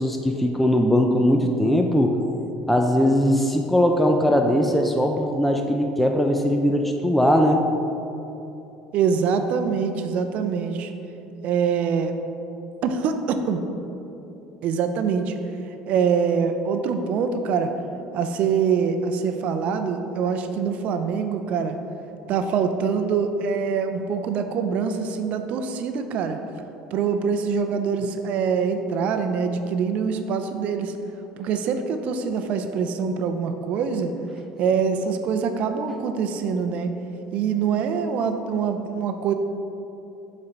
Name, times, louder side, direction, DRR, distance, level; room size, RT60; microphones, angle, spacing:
voice 1, 0.0-2.2 2.7-7.6, equal, 5° left, 3 dB, 0.5 m, -20 dB
voice 2, 8.9-10.9 11.4-12.1 12.8-13.6 14.6-15.3 15.9-17.7 18.1-21.8 22.3-26.4 26.9-30.9 31.4-34.1 34.6-36.9 37.3-39.3, right 6 dB, 60° right, 7 dB, 0.5 m, -24 dB
7.6 x 4.3 x 4.6 m, 2.9 s
supercardioid pair, 90°, 3 cm